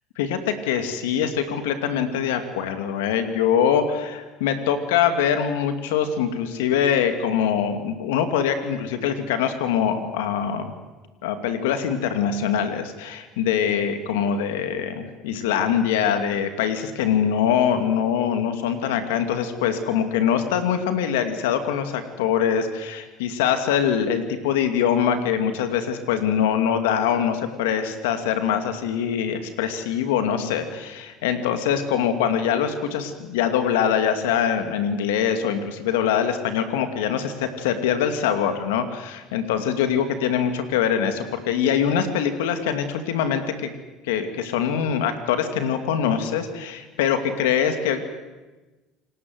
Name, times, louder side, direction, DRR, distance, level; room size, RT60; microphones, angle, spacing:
voice 1, 0.2-10.7 11.2-43.7 44.1-48.1, left 8 dB, 85° left, 8 dB, 2.6 m, -23 dB
28.5 x 19.5 x 8.0 m, 1.2 s
supercardioid pair, 90°, 0 cm